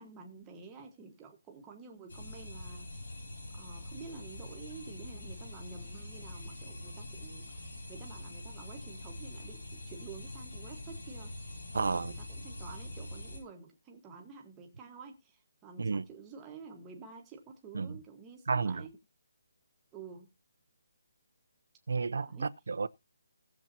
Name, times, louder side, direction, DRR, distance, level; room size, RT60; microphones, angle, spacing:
voice 1, 0.0-3.1 3.5-11.4 11.7-19.0 19.9-20.3 22.3-22.5, right 5 dB, 10° right, 1.3 m, -50 dB
sound 1, 2.1-13.4, left 1 dB, 75° left, 7.1 m, -44 dB
voice 2, 11.7-12.1 15.8-16.0 17.7-18.0 18.5-18.9 21.9-22.9, right 4 dB, 65° right, 0.7 m, -32 dB
18.0 x 7.3 x 2.8 m
hypercardioid pair, 180°, 0 cm